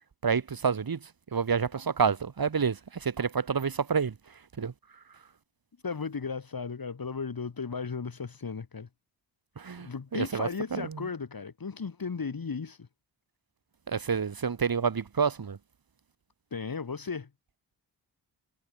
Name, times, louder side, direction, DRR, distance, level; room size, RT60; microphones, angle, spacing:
voice 1, 0.2-1.0 1.3-4.1 4.6-4.7 9.6-11.0 13.9-15.6, right 6 dB, 50° right, 1.9 m, -28 dB
voice 2, 5.8-8.9 9.8-12.9 16.5-17.3, left 5 dB, 50° left, 3.2 m, -35 dB
cardioid pair, 50°, 46 cm